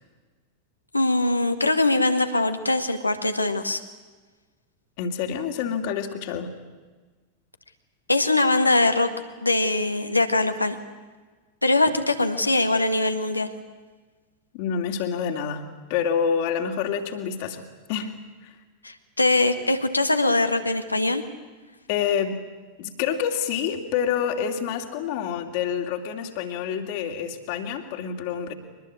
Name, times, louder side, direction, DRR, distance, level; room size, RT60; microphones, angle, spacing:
voice 1, 0.9-3.8 8.1-9.1 9.4-10.8 11.6-13.5 18.8-21.2, left 2 dB, 85° left, 7 dB, 1.8 m, -22 dB
voice 2, 5.0-6.5 14.5-18.2 18.4-18.5 21.9-22.4 22.8-28.5, left 7 dB, 50° left, 5 dB, 2.7 m, -27 dB
23.5 x 20.5 x 8.6 m, 1.4 s
figure-of-eight pair, 90°, 0 cm